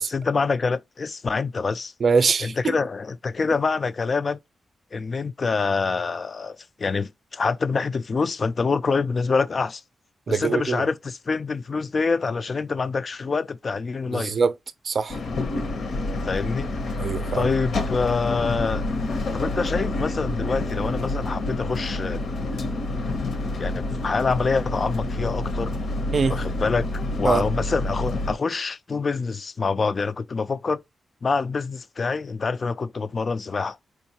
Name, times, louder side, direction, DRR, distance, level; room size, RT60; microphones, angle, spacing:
voice 1, 0.0-1.9 2.4-4.4 4.9-9.8 10.3-14.3 16.2-16.7 17.3-18.8 19.3-22.2 22.6-22.7 23.6-25.7 26.3-30.8 31.2-33.8, left 4 dB, 40° left, 0.3 m, -26 dB
voice 2, 2.0-2.8 10.3-10.8 14.1-14.5 14.8-15.2 17.0-17.5 26.1-26.4 27.2-27.4, right 5 dB, 50° right, 0.4 m, -23 dB
sound 1, 15.1-28.3, left 2 dB, 65° left, 0.8 m, -28 dB
4.6 x 2.6 x 2.8 m
wide cardioid pair, 110°, 0 cm